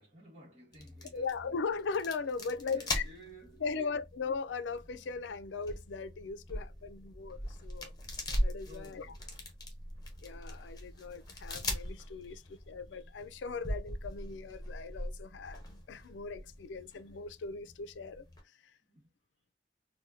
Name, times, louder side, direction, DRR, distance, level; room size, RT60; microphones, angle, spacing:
voice 1, 0.0-1.6 2.4-3.8 7.0-7.1 8.6-9.4 18.8-19.1, equal, 40° right, 1.2 m, -55 dB
sound 1, 0.7-18.4, left 1 dB, 25° left, 0.9 m, -41 dB
voice 2, 1.1-3.0 3.6-7.9 8.4-9.1 10.2-18.2 18.6-18.7, left 5 dB, 90° left, 0.4 m, -39 dB
4.1 x 2.2 x 2.5 m
head